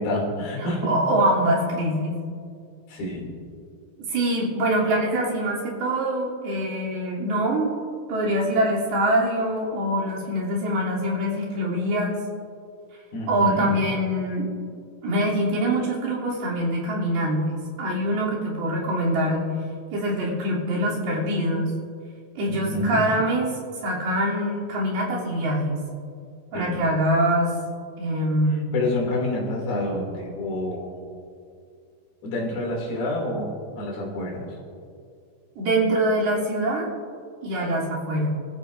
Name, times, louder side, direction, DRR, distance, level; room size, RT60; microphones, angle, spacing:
voice 1, 0.0-1.0 2.9-3.3 13.1-13.7 22.5-23.1 26.5-26.8 28.5-31.0 32.2-34.6, left 1 dB, 75° left, -1 dB, 4.8 m, -28 dB
voice 2, 0.9-2.2 4.1-7.7 8.1-12.2 13.3-14.5 15.0-17.5 17.8-19.5 19.9-21.7 22.4-25.8 26.5-27.5 28.0-28.7 35.6-36.9 37.4-38.3, right 1 dB, 85° right, -6 dB, 5.2 m, -24 dB
25.5 x 14.0 x 2.7 m, 2.3 s
omnidirectional pair, 4.3 m